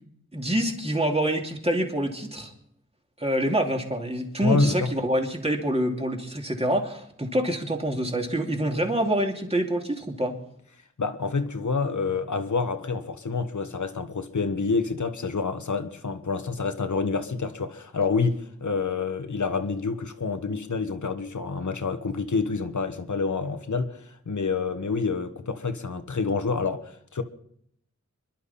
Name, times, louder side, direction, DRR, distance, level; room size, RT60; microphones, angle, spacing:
voice 1, 0.3-2.5 3.2-10.4, right 1 dB, 20° right, 2.7 m, -26 dB
voice 2, 4.4-4.9 11.0-27.2, left 4 dB, 75° left, 1.4 m, -28 dB
26.0 x 11.5 x 4.3 m
wide cardioid pair, 80°, 30 cm